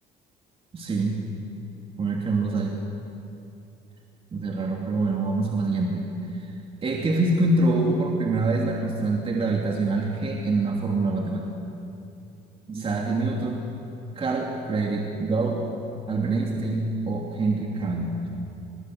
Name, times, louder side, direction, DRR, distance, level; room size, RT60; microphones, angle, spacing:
voice 1, 0.7-1.2 2.0-2.8 4.3-6.1 6.3-6.5 6.8-11.4 12.7-13.6 14.2-15.6 16.1-18.1, right 2 dB, 35° right, 0 dB, 2.9 m, -25 dB
24.5 x 21.5 x 7.9 m, 2.7 s
cardioid pair, 110°, 17 cm